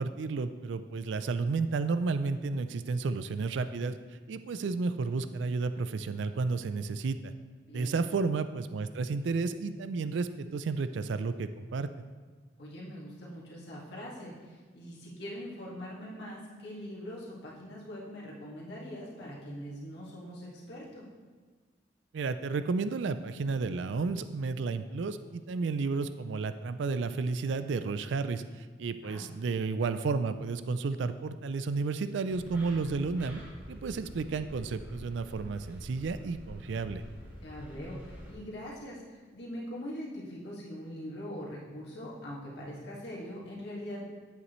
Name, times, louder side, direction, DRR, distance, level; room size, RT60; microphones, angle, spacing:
voice 1, 0.0-4.0 4.3-7.3 7.7-11.9 22.1-33.4 33.7-37.0, right 4 dB, 75° right, 11 dB, 0.4 m, -32 dB
voice 2, 7.7-8.0 12.6-21.0 29.0-29.3 37.4-44.0, equal, 65° left, -5 dB, 2.0 m, -42 dB
sound 1, 32.3-38.3, equal, 10° right, 2.6 m, -47 dB
9.7 x 8.2 x 3.1 m, 1.5 s
head